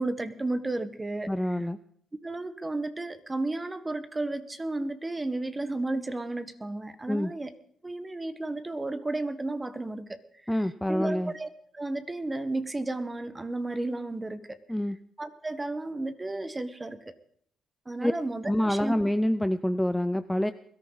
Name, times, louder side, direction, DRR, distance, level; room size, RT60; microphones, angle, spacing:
voice 1, 0.0-1.3 2.2-7.5 7.8-10.6 10.9-14.6 15.2-17.1 17.8-18.9, right 2 dB, 20° right, 12 dB, 1.4 m, -33 dB
voice 2, 1.3-1.8 7.1-7.3 10.5-11.3 14.7-15.0 18.0-18.1 18.5-20.5, left 1 dB, 5° left, 11 dB, 0.6 m, -26 dB
21.5 x 13.5 x 4.1 m, 0.63 s
cardioid pair, 90°, 0 cm